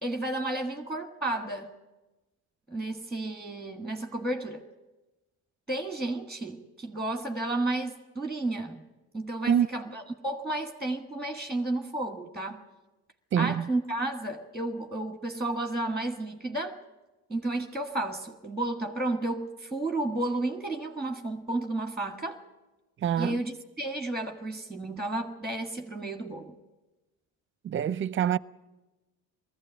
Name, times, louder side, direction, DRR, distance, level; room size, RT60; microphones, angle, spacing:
voice 1, 0.0-1.7 2.7-4.6 5.7-8.8 9.1-12.6 13.4-16.8 17.3-22.4 23.2-26.6, right 2 dB, ahead, 1.5 m, -32 dB
voice 2, 13.3-13.7 23.0-23.4 27.6-28.4, right 9 dB, 35° right, 0.6 m, -25 dB
20.0 x 14.5 x 9.0 m
cardioid pair, 95°, 36 cm